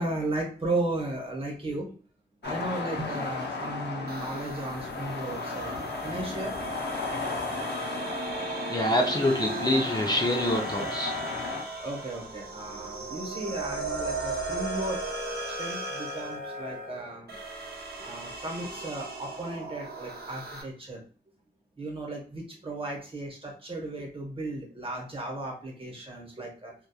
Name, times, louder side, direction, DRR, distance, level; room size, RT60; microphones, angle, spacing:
voice 1, 0.0-1.9 2.4-6.5 11.8-15.0 15.6-17.4 18.0-21.0 21.8-26.7, right 2 dB, 30° right, 0 dB, 0.9 m, -35 dB
sound 1, 2.4-11.6, left 4 dB, 85° left, 0.6 m, -35 dB
sound 2, 4.1-20.6, right 3 dB, 65° right, 0.6 m, -37 dB
voice 2, 8.7-11.1, left 1 dB, 25° left, 0 dB, 0.4 m, -26 dB
2.9 x 2.2 x 2.2 m, 0.40 s
wide cardioid pair, 115°, 17 cm